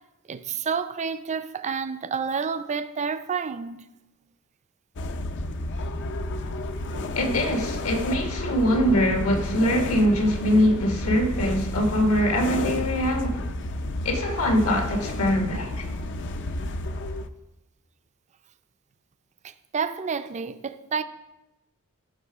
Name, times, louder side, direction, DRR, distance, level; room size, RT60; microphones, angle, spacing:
voice 1, 0.3-3.9 6.8-7.1 19.4-21.0, right 6 dB, 30° right, 0.4 m, -30 dB
sound 1, 5.0-17.3, left 1 dB, 55° left, 0.5 m, -31 dB
voice 2, 7.1-13.4 14.0-15.8, equal, 80° left, 1.7 m, -23 dB
14.0 x 5.9 x 4.8 m
head